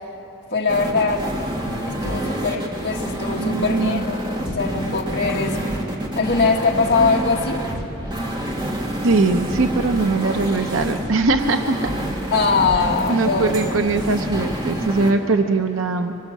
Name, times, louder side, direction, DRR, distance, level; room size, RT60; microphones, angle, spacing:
voice 1, 0.5-1.2 1.8-5.6 6.2-7.6 12.3-13.8, left 4 dB, 55° left, 0 dB, 1.6 m, -22 dB
sound 1, 0.7-15.1, equal, 20° right, 1.8 m, -27 dB
voice 2, 3.4-4.0 9.0-12.0 12.7-12.8 13.1-16.1, right 3 dB, 85° right, 6 dB, 0.8 m, -21 dB
24.5 x 20.0 x 7.3 m, 3.0 s
head